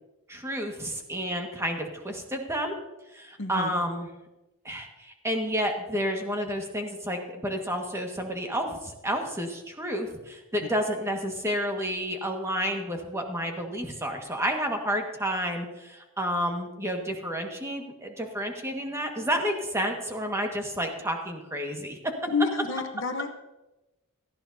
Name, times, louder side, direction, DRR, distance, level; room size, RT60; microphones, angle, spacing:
voice 1, 0.3-2.8 3.1-4.1 4.6-22.1, equal, 15° right, 2 dB, 1.6 m, -30 dB
voice 2, 3.4-3.7 22.3-23.3, left 4 dB, 60° left, 5 dB, 1.0 m, -29 dB
18.0 x 13.5 x 2.7 m, 1.0 s
head